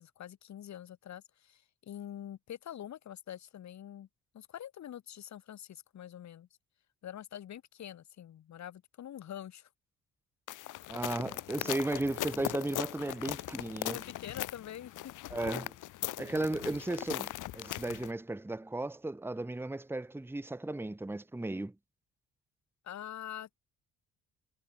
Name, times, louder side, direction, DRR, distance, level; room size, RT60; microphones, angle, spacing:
voice 1, 0.0-4.1 4.3-6.5 7.0-9.7 11.2-11.8 13.9-15.1 22.8-23.6, left 10 dB, 65° left, 3.1 m, -45 dB
sound 1, 10.5-18.1, left 15 dB, 85° left, 2.2 m, -39 dB
voice 2, 10.9-14.0 15.3-15.7 16.2-21.7, right 2 dB, 5° right, 1.2 m, -35 dB
cardioid pair, 90°, 30 cm